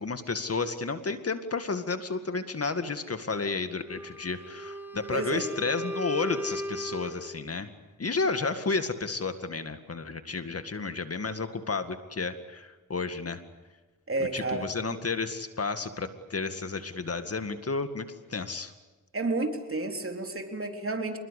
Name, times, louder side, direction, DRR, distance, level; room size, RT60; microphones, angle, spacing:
voice 1, 0.0-7.7 8.0-13.4 14.3-18.7, left 4 dB, 45° left, 9 dB, 2.1 m, -32 dB
Wind instrument woodwind instrument, 3.8-7.4, equal, 5° right, 3.1 m, -37 dB
voice 2, 5.1-5.5 14.1-14.7 19.1-21.2, right 2 dB, 40° right, 4 dB, 3.7 m, -31 dB
26.5 x 21.5 x 8.4 m, 1.2 s
cardioid pair, 65°, 32 cm